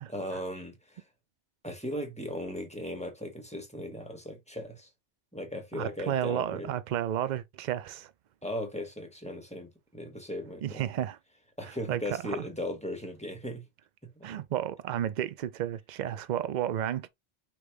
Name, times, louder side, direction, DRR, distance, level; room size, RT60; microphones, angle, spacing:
voice 1, 0.1-1.0 1.6-4.9 5.3-6.7 8.4-10.8 11.6-13.6 14.0-14.4, left 1 dB, 5° left, 1.2 m, -37 dB
voice 2, 5.7-8.1 10.6-11.2 11.6-12.5 14.2-17.1, right 11 dB, 55° right, 0.5 m, -32 dB
5.1 x 3.1 x 3.3 m
omnidirectional pair, 1.2 m